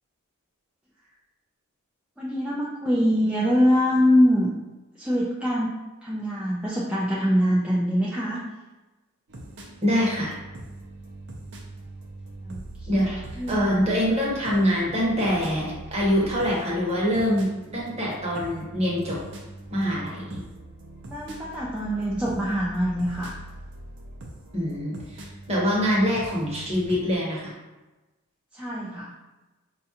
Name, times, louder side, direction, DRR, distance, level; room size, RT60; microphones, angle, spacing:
voice 1, 2.2-4.5 5.0-5.7 6.0-8.4 12.4-12.6 13.4-13.6 21.1-23.3 28.5-29.1, equal, 5° right, -7 dB, 0.3 m, -23 dB
sound 1, 9.3-27.0, right 2 dB, 50° right, 0.6 m, -42 dB
voice 2, 9.8-10.4 12.9-13.2 13.5-19.2 19.7-20.4 24.5-27.5, equal, 30° right, -4 dB, 0.9 m, -24 dB
5.1 x 2.4 x 2.8 m, 1.1 s
head